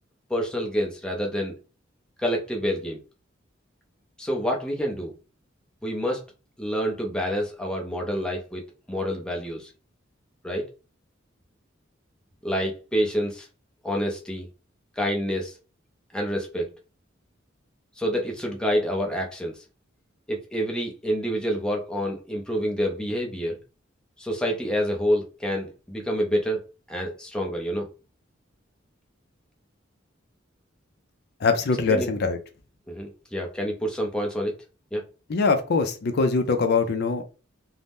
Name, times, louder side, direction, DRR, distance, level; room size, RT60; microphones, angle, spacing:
voice 1, 0.3-1.5 2.2-3.0 4.2-5.1 5.8-6.2 6.6-9.7 10.4-10.7 12.4-13.5 13.8-14.5 15.0-15.5 16.1-16.7 18.0-19.5 20.3-23.6 24.2-26.6 26.9-27.9 31.9-32.1 32.9-34.5 34.9-35.0, equal, 5° left, 0 dB, 0.5 m, -27 dB
voice 2, 31.4-32.4 35.3-37.2, left 4 dB, 55° left, 7 dB, 0.4 m, -23 dB
2.7 x 2.0 x 3.4 m, 0.33 s
head